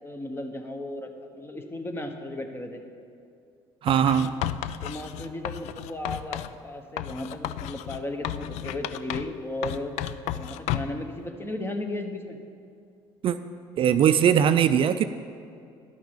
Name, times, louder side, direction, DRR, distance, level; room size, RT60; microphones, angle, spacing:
voice 1, 0.0-2.8 4.1-4.4 4.8-9.9 10.4-12.4, left 1 dB, 20° left, 5 dB, 1.2 m, -35 dB
voice 2, 3.8-4.3 13.2-13.4 13.8-15.0, right 9 dB, 50° right, 10 dB, 0.4 m, -20 dB
Writing, 3.9-6.6 7.0-9.4 9.6-11.0, left 12 dB, 70° left, 0.4 m, -33 dB
11.0 x 5.9 x 7.3 m, 2.4 s
supercardioid pair, 85°, 12 cm